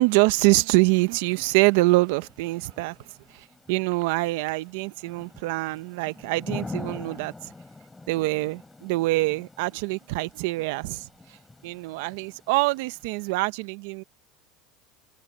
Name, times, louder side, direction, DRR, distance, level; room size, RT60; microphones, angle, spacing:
voice 1, 0.0-3.0 3.3-7.3 8.1-11.1 11.6-14.0, right 22 dB, 75° right, 0.9 m, -24 dB
Thunder / Rain, 0.6-13.3, left 2 dB, 10° left, 4.3 m, -44 dB
open air
supercardioid pair, 135°, 0 cm